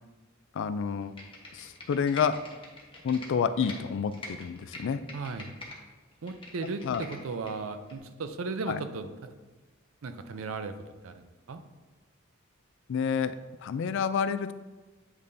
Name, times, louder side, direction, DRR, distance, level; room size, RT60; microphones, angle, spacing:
voice 1, 0.6-1.1 1.5-2.4 3.0-5.0 6.8-7.0 8.7-8.8 12.9-13.3 13.6-14.5, left 6 dB, 65° left, 13 dB, 0.3 m, -29 dB
Computer keyboard, 1.0-3.8 4.1-5.8 6.1-7.5 7.9-8.0, left 2 dB, 25° left, 1.1 m, -45 dB
voice 2, 5.1-5.5 6.2-9.3 10.0-10.7 11.0-11.6, right 4 dB, 75° right, 9 dB, 0.5 m, -36 dB
8.3 x 5.3 x 2.6 m, 1.2 s
head